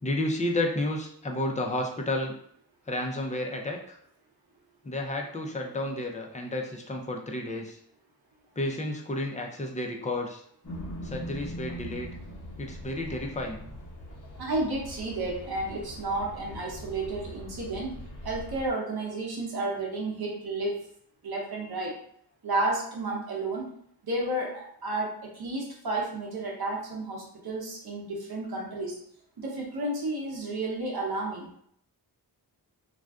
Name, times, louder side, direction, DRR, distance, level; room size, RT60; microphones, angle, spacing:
voice 1, 0.0-2.3 2.9-4.0 4.8-7.8 8.6-10.4 11.0-12.1 12.6-13.7, left 1 dB, 20° left, 1 dB, 0.4 m, -31 dB
sound 1, 10.6-18.7, equal, 50° left, 0.9 m, -41 dB
voice 2, 14.4-17.9 18.2-20.8 21.2-21.9 22.4-23.7 24.0-29.0 29.4-31.5, right 2 dB, 65° right, -2 dB, 0.9 m, -32 dB
2.5 x 2.2 x 3.5 m, 0.66 s
wide cardioid pair, 105°, 40 cm